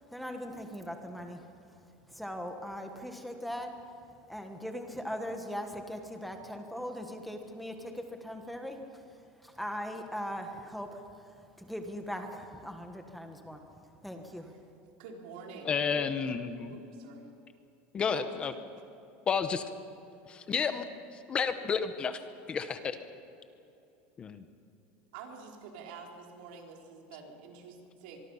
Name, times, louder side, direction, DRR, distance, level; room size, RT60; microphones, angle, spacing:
voice 1, 0.1-1.5 2.1-3.7 4.3-9.0 9.4-13.6 14.0-14.5, equal, ahead, 4 dB, 1.5 m, -40 dB
voice 2, 15.0-16.0 16.7-17.3 18.1-18.4 25.1-28.2, right 5 dB, 80° right, 1 dB, 4.1 m, -47 dB
voice 3, 15.6-16.7 17.9-18.5 19.3-19.6 20.3-20.8 21.3-22.2 22.5-23.0 24.2-24.4, left 6 dB, 20° left, 10 dB, 1.0 m, -31 dB
24.0 x 23.0 x 5.7 m, 2.7 s
cardioid pair, 165°, 5 cm